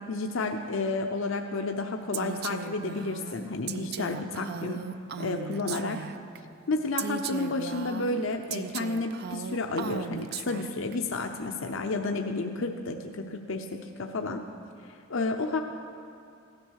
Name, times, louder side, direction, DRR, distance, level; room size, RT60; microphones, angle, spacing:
voice 1, 0.1-4.8 5.2-6.0 6.7-14.4 15.1-15.6, left 3 dB, 70° left, 4 dB, 0.7 m, -31 dB
Female speech woman speaking, 2.1-6.4 7.0-10.9, right 7 dB, 50° right, 0.5 m, -37 dB
16.0 x 10.5 x 6.4 m, 2.5 s
head